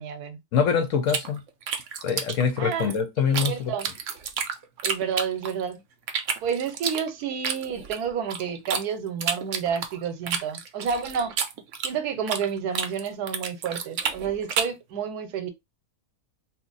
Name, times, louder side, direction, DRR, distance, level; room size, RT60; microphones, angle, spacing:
voice 1, 0.0-0.4 2.6-2.9 3.3-3.9 4.8-5.8 6.4-11.3 11.8-15.5, right 7 dB, 85° right, 1.2 m, -30 dB
voice 2, 0.5-1.4 2.0-3.7, left 6 dB, 65° left, 0.9 m, -24 dB
sound 1, 1.1-3.5 3.8-5.7 6.1-8.8 9.2-12.5 12.7-14.8, right 7 dB, 65° right, 0.8 m, -30 dB
2.8 x 2.4 x 3.8 m
omnidirectional pair, 1.6 m